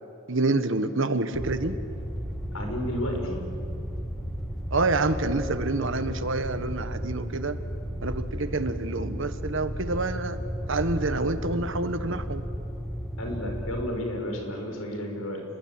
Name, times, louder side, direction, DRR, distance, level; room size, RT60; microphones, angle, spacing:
voice 1, 0.3-1.8 4.7-7.6 8.0-10.4 10.7-12.4, right 2 dB, 65° right, 10 dB, 1.4 m, -27 dB
sound 1, 1.3-13.8, equal, ahead, 1.3 m, -34 dB
voice 2, 2.5-3.4 13.2-15.4, left 1 dB, 85° left, 3 dB, 5.8 m, -32 dB
29.0 x 21.5 x 8.9 m, 2.7 s
head